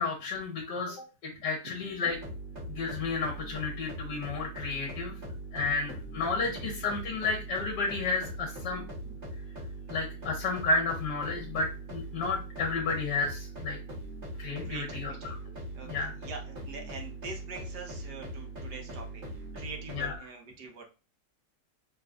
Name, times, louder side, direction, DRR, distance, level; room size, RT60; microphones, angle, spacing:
voice 1, 0.0-2.2 2.7-5.1 5.5-8.8 9.9-13.8 14.4-15.1 15.8-16.1 19.9-20.1, left 3 dB, 70° left, -1 dB, 1.6 m, -32 dB
sound 1, 2.1-20.2, right 1 dB, 40° right, 1.6 m, -41 dB
voice 2, 14.6-15.4 15.7-19.2 19.5-20.8, right 4 dB, 70° right, 2 dB, 1.6 m, -44 dB
5.7 x 3.1 x 2.4 m, 0.32 s
omnidirectional pair, 1.9 m